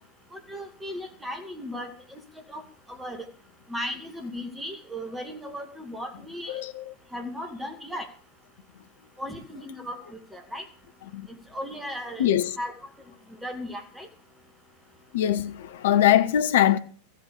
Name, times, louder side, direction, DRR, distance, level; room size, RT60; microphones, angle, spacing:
voice 1, 0.3-2.2 2.5-2.6 2.9-3.2 3.7-6.6 7.1-8.1 9.2-10.0 10.3-10.7 11.5-12.3 12.6-12.7 13.4-14.1, equal, 5° right, 2.1 m, -36 dB
voice 2, 6.5-6.9 11.1-11.3 12.2-12.6 15.1-16.8, left 11 dB, 55° left, 1.0 m, -22 dB
14.5 x 8.6 x 6.7 m
figure-of-eight pair, 90°, 0 cm